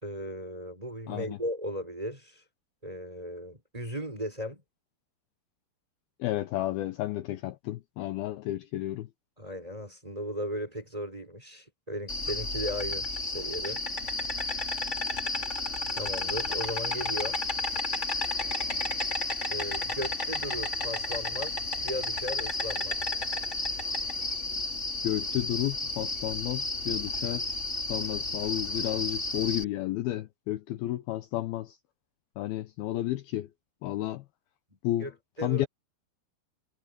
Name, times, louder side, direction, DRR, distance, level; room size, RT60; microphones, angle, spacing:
voice 1, 0.0-2.4 2.8-4.6 9.4-13.1 13.3-13.8 15.9-17.4 19.5-23.0 35.0-35.1 35.4-35.7, equal, 10° right, 3.5 m, -36 dB
voice 2, 1.1-1.4 6.2-9.1 25.0-31.8 32.4-33.5 33.8-34.2 34.8-35.1 35.4-35.7, left 15 dB, 85° left, 2.1 m, -32 dB
Insect, 12.1-29.6, left 2 dB, 20° left, 2.3 m, -32 dB
omnidirectional pair, 5.6 m